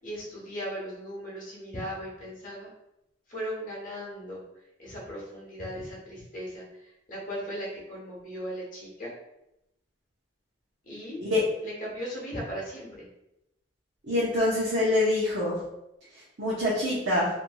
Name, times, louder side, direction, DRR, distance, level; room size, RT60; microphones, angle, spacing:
voice 1, 0.0-2.7 3.3-4.4 4.8-9.1 10.8-11.2 11.6-13.1, equal, 50° left, -5 dB, 1.0 m, -37 dB
voice 2, 14.1-15.6 16.4-17.3, left 1 dB, 85° right, -7 dB, 0.7 m, -25 dB
3.0 x 2.6 x 2.2 m, 0.87 s
head